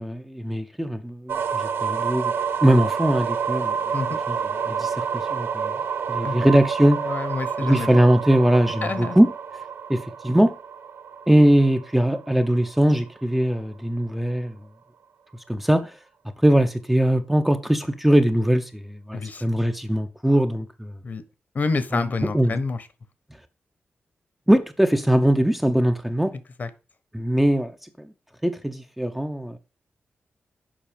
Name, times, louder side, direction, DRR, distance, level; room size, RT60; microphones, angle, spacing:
voice 1, 0.0-2.3 2.6-3.8 4.3-4.4 4.7-5.7 6.1-7.1 7.6-9.3 9.9-10.6 11.3-14.6 15.5-16.0 16.4-20.9 21.9-22.0 22.3-22.6 24.5-26.3 27.1-27.7 28.0-28.1 28.4-29.6, right 1 dB, 5° right, 0.7 m, -21 dB
sound 1, 1.3-13.1, right 7 dB, 75° right, 0.7 m, -29 dB
voice 2, 7.0-7.9 8.8-9.2 19.1-19.4 21.0-21.2 21.5-22.9 26.6-26.7, left 4 dB, 45° left, 1.1 m, -28 dB
7.5 x 5.5 x 5.1 m
wide cardioid pair, 145°, 4 cm